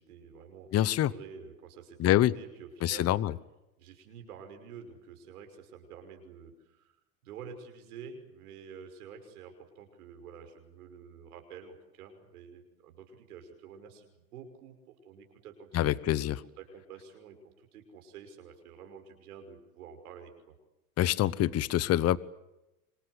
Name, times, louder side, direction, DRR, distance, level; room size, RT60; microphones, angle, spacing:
voice 1, 0.0-3.1 3.8-14.8 15.1-16.3 16.6-20.6, right 6 dB, 80° right, 5 dB, 5.9 m, -49 dB
voice 2, 0.7-1.1 2.0-2.3 2.8-3.3 15.7-16.4 21.0-22.2, left 13 dB, 35° left, 19 dB, 1.0 m, -25 dB
26.5 x 26.0 x 8.1 m, 0.95 s
hypercardioid pair, 110°, 44 cm